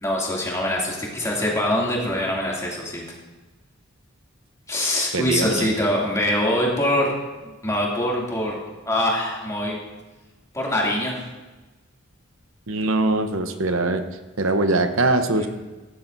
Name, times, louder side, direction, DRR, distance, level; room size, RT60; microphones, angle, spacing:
voice 1, 0.0-3.0 4.7-7.1 7.4-8.6 8.8-9.8 10.5-11.1 15.3-15.5, left 1 dB, 15° left, -4 dB, 2.6 m, -23 dB
voice 2, 5.1-5.8 12.7-14.0 14.4-15.5, right 2 dB, 75° right, 8 dB, 0.9 m, -22 dB
15.5 x 11.5 x 2.7 m, 1.2 s
head